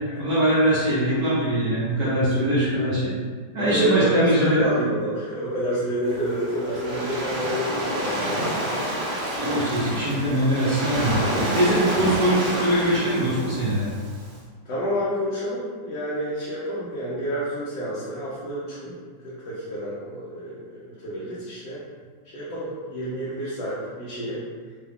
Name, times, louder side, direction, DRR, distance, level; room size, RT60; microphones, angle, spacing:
voice 1, 0.2-3.1 3.5-4.6 9.4-11.1 11.5-13.9, right 1 dB, 60° right, -11 dB, 1.5 m, -22 dB
voice 2, 3.6-8.5 14.7-19.0 19.2-21.8 22.3-24.4, right 1 dB, 80° left, -9 dB, 1.6 m, -28 dB
Waves surf, 6.1-14.3, equal, 85° right, 1.8 m, -29 dB
4.7 x 2.3 x 3.5 m, 1.5 s
omnidirectional pair, 2.1 m